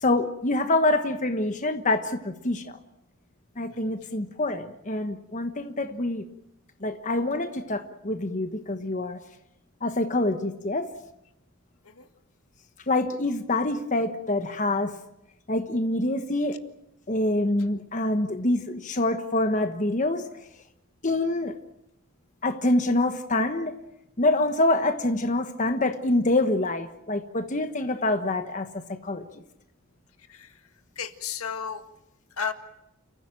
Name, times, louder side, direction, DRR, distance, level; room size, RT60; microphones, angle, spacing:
voice 1, 0.0-2.8 3.6-6.2 6.8-9.2 9.8-10.9 12.9-14.9 15.5-16.6 17.1-20.3 21.0-21.5 22.4-23.8 24.2-29.2, left 2 dB, 35° left, 7 dB, 1.2 m, -26 dB
voice 2, 31.0-31.8 32.4-32.5, left 6 dB, 75° left, 8 dB, 1.8 m, -33 dB
29.5 x 15.5 x 9.0 m, 0.83 s
head